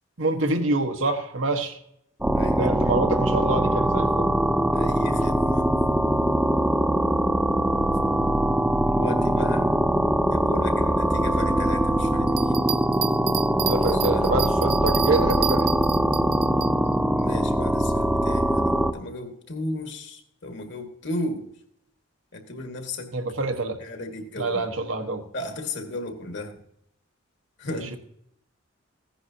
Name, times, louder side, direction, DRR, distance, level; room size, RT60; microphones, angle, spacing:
voice 1, 0.2-1.8 2.6-4.3 13.7-15.9 23.1-23.8 24.4-25.2 27.7-28.0, right 2 dB, 90° right, 4 dB, 1.4 m, -26 dB
sound 1, 2.2-18.9, right 1 dB, 5° right, 0.6 m, -22 dB
voice 2, 2.3-2.7 4.7-5.7 8.9-9.8 10.3-12.6 13.9-14.3 17.1-21.5 22.3-23.1 23.8-24.7 25.3-26.6 27.6-28.0, left 2 dB, 60° left, 4 dB, 1.9 m, -35 dB
Bell, 12.3-16.7 17.2-17.3, right 11 dB, 50° right, 0.5 m, -31 dB
15.5 x 9.9 x 2.8 m, 0.74 s
head